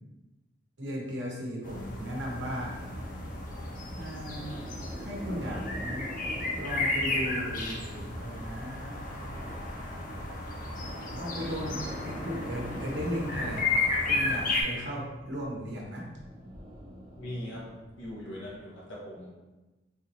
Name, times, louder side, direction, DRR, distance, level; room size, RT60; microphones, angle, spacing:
voice 1, 0.8-2.8 4.0-4.7 4.9-6.1 6.5-9.0 11.2-13.8 14.1-16.0, equal, 70° right, -3 dB, 0.9 m, -36 dB
sound 1, 1.6-14.6, left 2 dB, 45° left, 0.5 m, -33 dB
sound 2, 3.0-18.6, equal, 45° right, 0.9 m, -46 dB
voice 2, 17.2-17.6 18.0-19.3, left 1 dB, 90° left, -5 dB, 1.3 m, -40 dB
3.8 x 2.6 x 3.0 m, 1.1 s
head